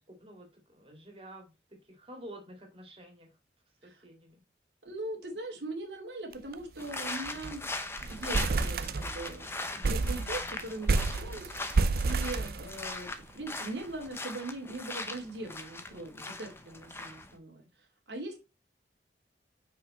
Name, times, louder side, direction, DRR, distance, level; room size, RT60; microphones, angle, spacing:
voice 1, 0.0-3.3 3.8-4.4 12.3-12.5, right 1 dB, 30° right, 2 dB, 2.3 m, -50 dB
voice 2, 4.8-7.7 8.1-17.6 18.1-18.4, right 2 dB, 90° right, 1 dB, 2.6 m, -41 dB
deur theaterzaal, 6.3-6.6 6.8-6.9 7.3-7.6 8.0-9.4 9.8-13.1, right 3 dB, 60° right, 0.5 m, -30 dB
sound 1, 6.8-17.4, left 2 dB, 15° left, 0.7 m, -40 dB
5.8 x 4.9 x 4.2 m, 0.26 s
head